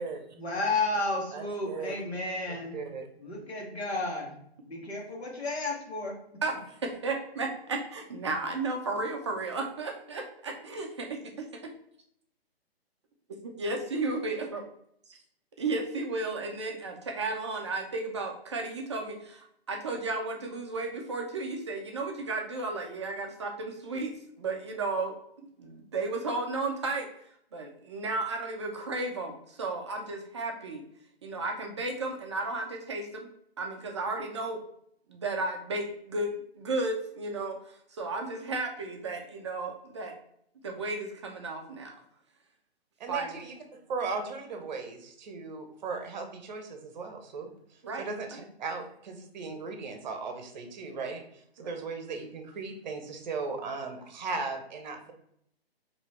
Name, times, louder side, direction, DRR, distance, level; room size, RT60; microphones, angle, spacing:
voice 1, 0.4-2.8 3.2-4.3 4.6-6.1, left 2 dB, 80° left, -1 dB, 1.5 m, -32 dB
voice 2, 1.3-2.0 2.5-3.1 43.0-55.1, right 4 dB, 45° right, 5 dB, 0.8 m, -37 dB
voice 3, 6.4-11.5 13.4-14.6 15.1-15.2 15.6-25.2 25.6-27.1 27.5-30.8 31.2-33.3 33.6-34.6 35.1-40.1 40.6-41.9 43.1-43.4 47.8-48.0 51.6-51.7, right 3 dB, 30° right, 2 dB, 0.4 m, -34 dB
3.2 x 3.0 x 4.1 m, 0.71 s
figure-of-eight pair, 135°, 32 cm